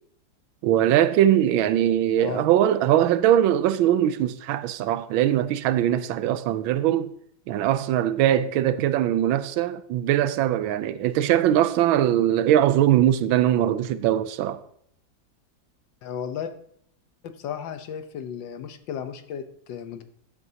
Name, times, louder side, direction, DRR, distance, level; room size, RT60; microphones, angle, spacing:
voice 1, 0.6-7.1 7.5-14.6, right 11 dB, 85° right, 1.4 m, -21 dB
voice 2, 2.2-2.5 16.0-16.5 17.4-20.0, left 8 dB, 70° left, 1.5 m, -34 dB
13.0 x 8.6 x 2.8 m
omnidirectional pair, 2.1 m